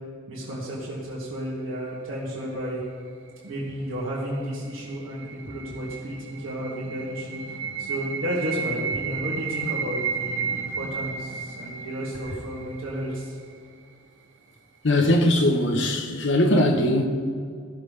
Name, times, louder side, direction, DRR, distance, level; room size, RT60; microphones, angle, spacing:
voice 1, 0.3-2.8 3.4-13.3, equal, 90° right, 2.2 m, -32 dB
sound 1, 4.5-13.5, right 6 dB, 70° right, 0.6 m, -33 dB
voice 2, 14.8-17.1, left 1 dB, 65° left, 1.1 m, -20 dB
16.0 x 7.2 x 3.4 m
head